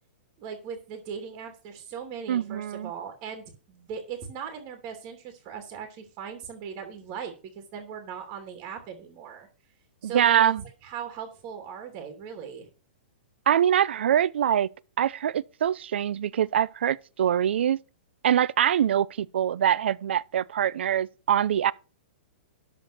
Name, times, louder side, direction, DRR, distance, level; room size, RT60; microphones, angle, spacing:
voice 1, 0.4-9.5 10.0-10.5 10.8-12.7, right 7 dB, 25° right, 2.8 m, -39 dB
voice 2, 2.3-2.9 10.0-10.6 13.5-14.7 15.0-17.8 18.2-21.7, right 10 dB, 75° right, 0.7 m, -24 dB
13.0 x 4.6 x 6.9 m
hypercardioid pair, 165°, 6 cm